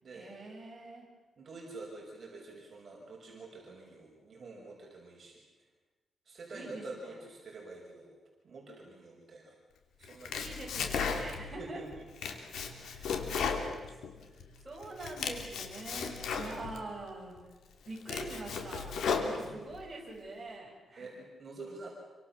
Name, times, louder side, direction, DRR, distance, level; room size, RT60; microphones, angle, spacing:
voice 1, 0.1-1.1 6.5-7.1 10.3-11.9 12.7-12.8 14.6-17.5 17.9-18.9 19.2-21.1, right 2 dB, 15° right, -3 dB, 7.6 m, -44 dB
voice 2, 1.4-5.4 6.3-8.1 8.4-9.6 10.0-10.6 11.6-12.0 12.9-14.4 19.4-19.5 21.0-21.9, right 3 dB, 40° right, -1 dB, 6.0 m, -48 dB
Domestic sounds home sounds, 10.0-11.6 11.9-14.5 14.8-16.8 17.4-17.5 17.9-19.8, left 5 dB, 85° left, 3.1 m, -35 dB
27.5 x 25.0 x 7.3 m, 1.2 s
wide cardioid pair, 135°, 0 cm